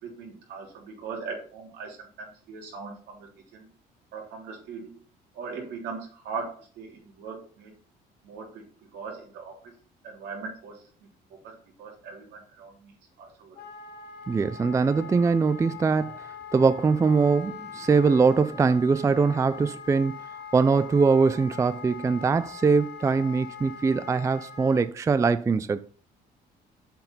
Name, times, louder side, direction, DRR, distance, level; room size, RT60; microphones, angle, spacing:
voice 1, 0.0-3.7 4.1-5.0 5.3-7.7 8.2-8.6 8.9-9.7 10.0-13.6, right 5 dB, 80° right, 3.3 m, -40 dB
Wind instrument woodwind instrument, 13.5-24.9, left 7 dB, 70° left, 1.3 m, -42 dB
voice 2, 14.3-16.2 16.5-20.1 20.5-25.8, right 4 dB, 20° right, 0.4 m, -22 dB
7.5 x 4.8 x 5.5 m
cardioid pair, 110°, 17 cm